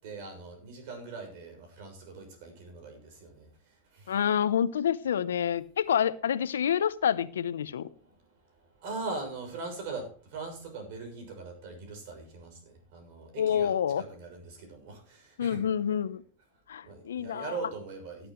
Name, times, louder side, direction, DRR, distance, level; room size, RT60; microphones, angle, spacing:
voice 1, 0.0-3.5 3.9-4.2 8.8-15.6 16.8-18.3, right 3 dB, 65° right, 5 dB, 6.5 m, -41 dB
voice 2, 4.1-7.9 13.4-14.0 15.4-16.2 16.7-17.5, left 8 dB, 85° left, 16 dB, 0.7 m, -28 dB
18.0 x 9.8 x 3.1 m, 0.43 s
hypercardioid pair, 95°, 0 cm